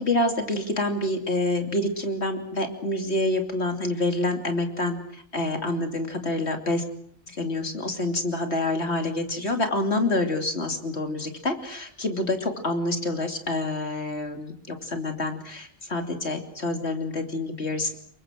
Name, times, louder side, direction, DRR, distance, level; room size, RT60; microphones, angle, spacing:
voice 1, 0.0-6.8 7.3-17.9, left 2 dB, 50° left, 5 dB, 3.2 m, -27 dB
28.0 x 23.5 x 6.4 m, 0.63 s
omnidirectional pair, 1.4 m